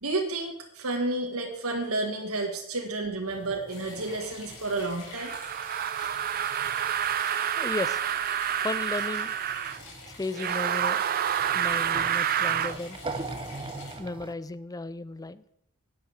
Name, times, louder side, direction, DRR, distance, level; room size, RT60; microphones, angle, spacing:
voice 1, 0.0-5.3, right 2 dB, 80° right, 2 dB, 1.7 m, -31 dB
sound 1, 3.3-7.8 8.1-14.3, right 2 dB, 25° right, 0.8 m, -43 dB
sound 2, 3.7-14.0, left 3 dB, 80° left, 4.9 m, -46 dB
sound 3, 5.2-9.8 10.3-12.8, right 9 dB, 40° right, 0.4 m, -28 dB
voice 2, 7.6-8.0 8.6-9.3 10.2-11.0 11.5-13.0 14.0-15.4, left 2 dB, 15° left, 16 dB, 0.5 m, -34 dB
10.5 x 8.6 x 7.1 m, 0.77 s
head